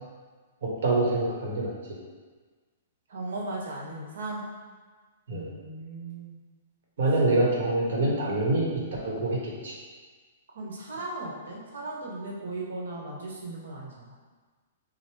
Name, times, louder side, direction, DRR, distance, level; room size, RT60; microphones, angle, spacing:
voice 1, 0.6-1.7 5.3-5.5 7.0-8.7 9.0-9.7, right 2 dB, 70° right, -3 dB, 1.4 m, -25 dB
voice 2, 3.1-4.4 5.3-6.4 10.5-14.1, right 2 dB, 85° right, -2 dB, 1.2 m, -37 dB
6.4 x 2.3 x 3.3 m, 1.4 s
hypercardioid pair, 160°, 0 cm